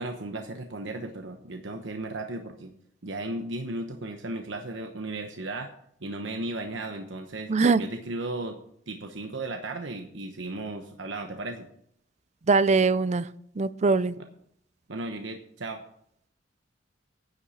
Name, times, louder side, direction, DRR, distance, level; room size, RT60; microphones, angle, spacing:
voice 1, 0.0-2.7 3.0-5.7 6.0-8.6 8.9-11.7 14.9-15.8, right 2 dB, 75° right, 5 dB, 1.0 m, -35 dB
voice 2, 7.5-7.8 12.5-13.3 13.6-14.1, right 4 dB, 40° right, 16 dB, 0.5 m, -22 dB
10.5 x 7.1 x 6.4 m, 0.70 s
head